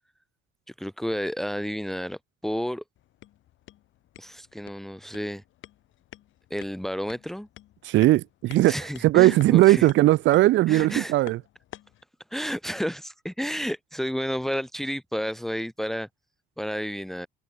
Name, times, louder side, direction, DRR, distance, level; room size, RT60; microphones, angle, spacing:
voice 1, 0.7-2.8 4.2-5.4 6.5-7.5 8.7-9.9 10.7-11.1 12.3-16.1 16.6-17.3, equal, ahead, 2.1 m, -31 dB
sound 1, 3.0-12.0, left 14 dB, 65° left, 6.5 m, -49 dB
voice 2, 7.8-8.7 9.0-11.4, right 16 dB, 65° right, 0.6 m, -18 dB
cardioid pair, 120°, 21 cm